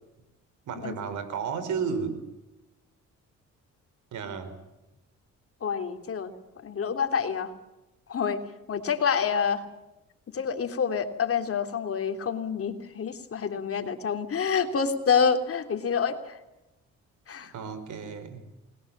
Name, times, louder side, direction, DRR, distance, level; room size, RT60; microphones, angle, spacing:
voice 1, 0.6-2.2 4.1-4.6 17.5-18.4, right 6 dB, 75° right, 12 dB, 4.8 m, -33 dB
voice 2, 5.6-6.3 6.6-7.5 8.1-8.4 8.7-9.7 10.3-16.4 17.3-17.5, left 6 dB, 50° left, 6 dB, 3.3 m, -27 dB
29.0 x 21.0 x 7.5 m, 0.99 s
cardioid pair, 90°, 30 cm